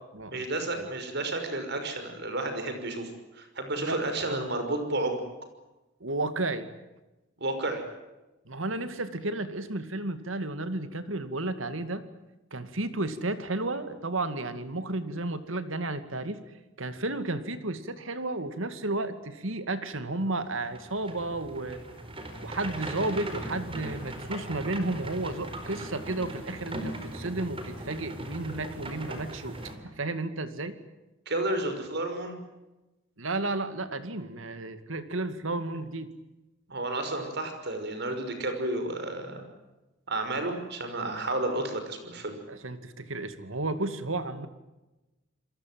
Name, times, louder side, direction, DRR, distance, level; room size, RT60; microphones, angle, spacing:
voice 1, 0.3-5.2 7.4-7.8 31.3-32.4 36.7-39.4 40.1-42.4, right 2 dB, 55° right, 7 dB, 5.9 m, -31 dB
voice 2, 3.8-4.4 6.0-6.7 8.5-12.0 12.5-16.4 16.8-21.8 22.4-29.6 29.8-30.8 33.2-36.1 42.5-44.5, right 2 dB, 75° right, 11 dB, 2.3 m, -32 dB
sound 1, 20.4-29.8, right 1 dB, 25° right, 4.6 m, -39 dB
28.5 x 22.5 x 7.8 m, 1.0 s
head